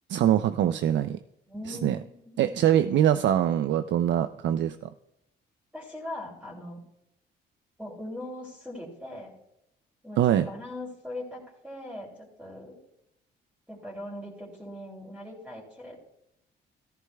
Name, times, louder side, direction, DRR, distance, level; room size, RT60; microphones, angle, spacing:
voice 1, 0.1-1.2 1.7-2.0 2.4-4.9 10.2-10.5, right 11 dB, 65° right, 11 dB, 0.5 m, -23 dB
voice 2, 1.5-2.6 5.7-6.8 7.8-9.3 10.0-12.8 13.7-16.0, left 1 dB, 5° right, -5 dB, 3.0 m, -40 dB
14.0 x 14.0 x 2.3 m, 0.80 s
cardioid pair, 90°, 20 cm